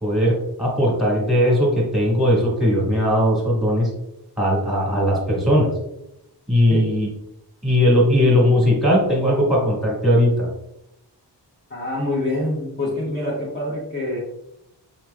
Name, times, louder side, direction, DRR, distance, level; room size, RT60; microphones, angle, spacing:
voice 1, 0.0-3.9 4.4-5.7 6.5-7.1 7.6-10.5, equal, ahead, -5 dB, 1.5 m, -18 dB
voice 2, 11.7-14.2, left 1 dB, 25° left, -6 dB, 0.8 m, -26 dB
5.9 x 3.0 x 2.3 m, 0.83 s
wide cardioid pair, 155°, 42 cm